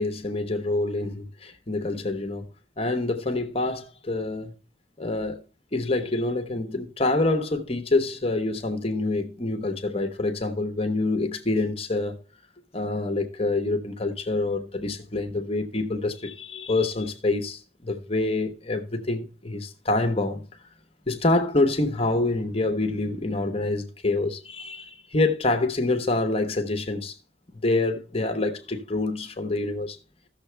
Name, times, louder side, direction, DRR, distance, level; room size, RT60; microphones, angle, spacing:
voice 1, 0.0-2.5 2.8-4.5 5.0-5.4 5.7-12.2 12.7-20.4 21.1-27.2 27.5-30.0, left 2 dB, 35° left, 1.0 m, -26 dB
14.5 x 6.6 x 3.3 m
head